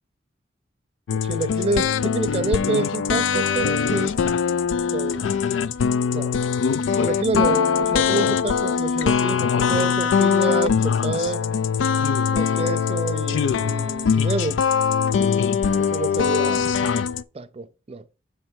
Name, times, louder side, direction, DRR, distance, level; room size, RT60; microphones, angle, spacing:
sound 1, 1.1-17.2, left 6 dB, 80° left, 0.3 m, -22 dB
voice 1, 1.1-4.2 4.9-5.2 6.1-6.3 7.0-11.4 12.3-14.6 15.8-16.7 17.3-18.0, right 3 dB, 30° right, 0.4 m, -28 dB
7.4 x 3.2 x 4.6 m
head